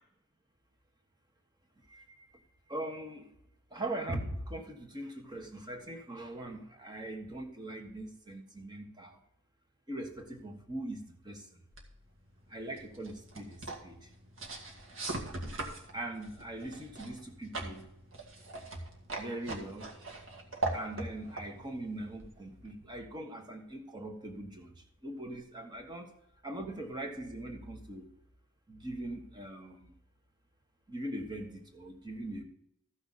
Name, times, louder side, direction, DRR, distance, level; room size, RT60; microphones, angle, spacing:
voice 1, 1.9-3.3 3.7-9.2 9.9-11.6 12.5-14.1 15.9-17.9 19.2-19.9 20.7-26.1 26.4-28.1 28.7-29.9 30.9-32.4, right 1 dB, 20° right, 3 dB, 1.4 m, -41 dB
sound 1, 11.7-22.8, right 2 dB, 90° right, 1.9 m, -41 dB
14.5 x 6.0 x 4.0 m, 0.77 s
head